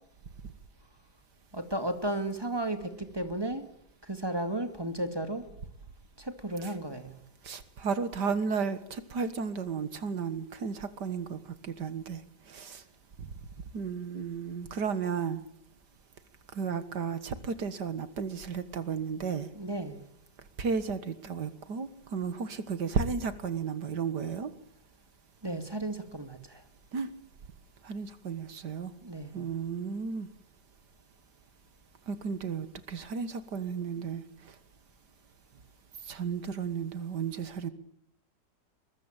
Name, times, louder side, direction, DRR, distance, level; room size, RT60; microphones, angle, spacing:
voice 1, 1.5-3.7 4.0-5.4 6.2-7.2 19.5-20.0 25.4-26.6 29.0-29.4, right 1 dB, 15° right, 2.3 m, -34 dB
voice 2, 7.4-12.2 12.5-12.8 13.2-13.3 13.7-15.4 16.5-19.5 20.6-24.5 26.9-27.1 27.8-28.9 29.3-30.3 32.1-34.2 36.1-37.7, right 6 dB, 65° right, 2.1 m, -33 dB
23.0 x 21.5 x 8.9 m
omnidirectional pair, 1.9 m